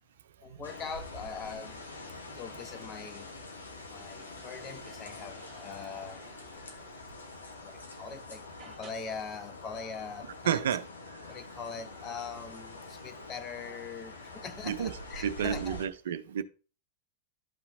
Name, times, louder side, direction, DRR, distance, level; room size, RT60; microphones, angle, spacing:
voice 1, 0.4-1.8 2.3-3.3 3.9-6.8 7.6-10.6 11.3-15.8, left 5 dB, 25° left, 0.8 m, -42 dB
High Wind - Ambiance at Night, 0.6-15.9, left 2 dB, 75° left, 1.2 m, -45 dB
sound 1, 3.8-8.1 8.6-8.9, right 5 dB, 20° right, 1.3 m, -56 dB
voice 2, 10.5-10.9 14.6-16.4, right 9 dB, 60° right, 0.4 m, -31 dB
12.0 x 5.6 x 2.5 m
figure-of-eight pair, 90°, 0 cm